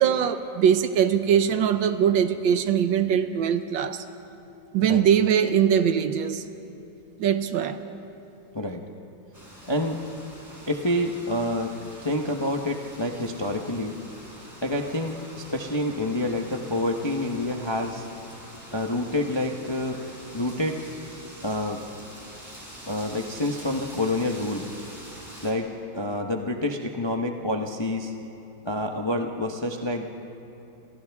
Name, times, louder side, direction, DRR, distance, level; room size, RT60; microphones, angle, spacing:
voice 1, 0.0-4.0 4.7-6.4 7.2-7.8, right 8 dB, 70° right, 10 dB, 1.5 m, -22 dB
Wind, 9.3-25.5, equal, 10° right, 3.8 m, -45 dB
voice 2, 9.6-10.0 10.7-11.7 12.0-14.0 14.6-18.1 18.7-20.0 20.3-20.8 21.4-21.8 22.9-24.6 25.4-28.1 28.6-30.1, left 1 dB, 25° left, 2 dB, 0.6 m, -28 dB
30.0 x 26.0 x 3.5 m, 3.0 s
omnidirectional pair, 2.2 m